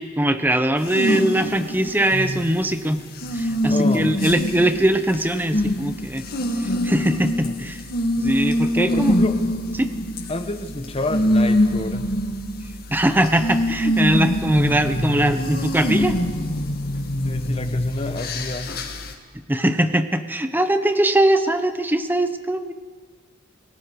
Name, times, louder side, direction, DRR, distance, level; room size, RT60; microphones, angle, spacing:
voice 1, 0.0-3.0 3.3-6.3 6.6-7.8 8.2-9.2 9.8-9.9 12.9-16.2 19.5-22.7, right 1 dB, 10° right, 9 dB, 1.0 m, -21 dB
sound 1, 0.8-19.1, left 1 dB, 50° left, 2.0 m, -24 dB
voice 2, 3.7-4.1 7.4-7.6 8.7-9.4 10.3-12.1 15.4-15.5 17.1-18.8, left 2 dB, 30° left, 7 dB, 1.4 m, -29 dB
28.5 x 19.0 x 4.9 m, 1.5 s
head